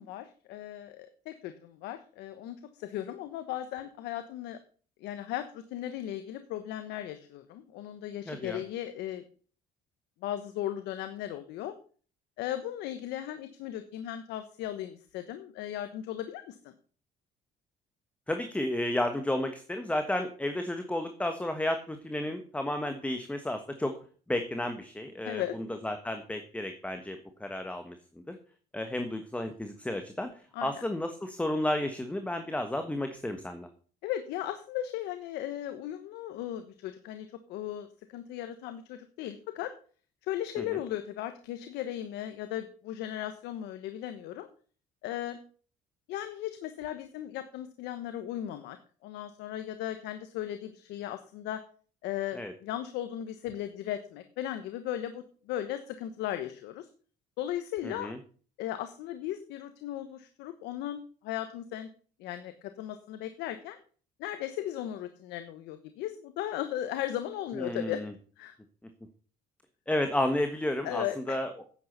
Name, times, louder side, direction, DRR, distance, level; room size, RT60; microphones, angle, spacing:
voice 1, 0.0-4.6 5.0-9.2 10.2-11.7 12.4-16.7 25.2-25.6 30.5-30.8 34.0-39.7 40.2-44.5 45.0-45.4 46.1-48.8 49.0-51.6 52.0-56.9 57.4-58.1 58.6-61.9 62.2-63.8 64.2-68.0 68.4-68.6 70.8-71.4, left 12 dB, 90° left, 9 dB, 1.1 m, -37 dB
voice 2, 8.3-8.6 18.3-24.0 24.3-28.4 28.7-33.7 40.6-40.8 52.3-52.5 57.8-58.2 67.5-68.1 69.9-71.5, left 1 dB, 10° left, 7 dB, 1.3 m, -32 dB
10.0 x 8.4 x 6.7 m, 0.42 s
cardioid pair, 110°, 17 cm